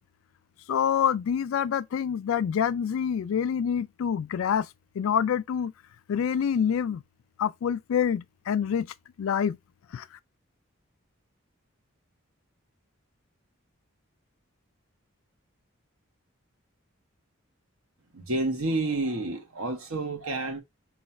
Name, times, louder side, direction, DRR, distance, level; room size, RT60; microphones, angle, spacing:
voice 1, 0.7-4.7 5.0-5.7 6.1-7.0 7.4-8.9 9.2-9.6 9.9-10.1, left 8 dB, 75° left, 0.3 m, -26 dB
voice 2, 18.1-20.6, right 2 dB, 80° right, 1.1 m, -29 dB
3.1 x 2.4 x 4.1 m
head